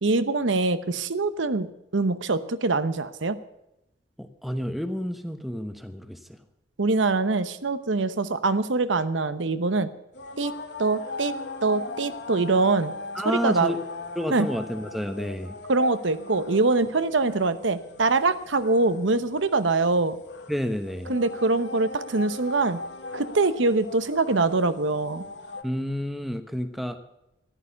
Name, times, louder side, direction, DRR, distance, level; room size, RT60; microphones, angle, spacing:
voice 1, 0.0-3.4 6.8-9.9 10.4-10.5 10.8-11.3 11.6-12.9 13.2-13.7 14.3-14.5 15.7-20.2 21.1-22.8 23.1-25.3, right 3 dB, 85° right, 12 dB, 0.9 m, -24 dB
voice 2, 4.2-6.4 13.1-13.8 14.1-15.6 20.5-21.1 25.6-27.0, equal, ahead, 8 dB, 1.0 m, -30 dB
sound 1, 10.1-25.6, left 3 dB, 65° left, 1.4 m, -39 dB
14.0 x 11.0 x 7.0 m, 0.86 s
head